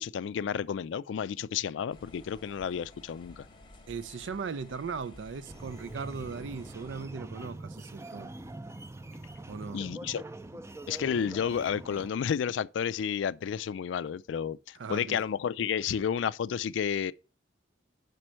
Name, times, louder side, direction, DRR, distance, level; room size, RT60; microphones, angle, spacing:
voice 1, 0.0-3.5 9.7-10.2 10.9-17.1, left 7 dB, 75° left, 0.3 m, -31 dB
sound 1, 1.9-7.0, left 1 dB, 25° left, 0.8 m, -53 dB
voice 2, 3.9-8.3 9.5-9.8 14.8-15.2, right 5 dB, 80° right, 0.4 m, -38 dB
sound 2, 5.4-12.1, right 2 dB, 15° right, 0.4 m, -44 dB
5.3 x 4.4 x 6.1 m
head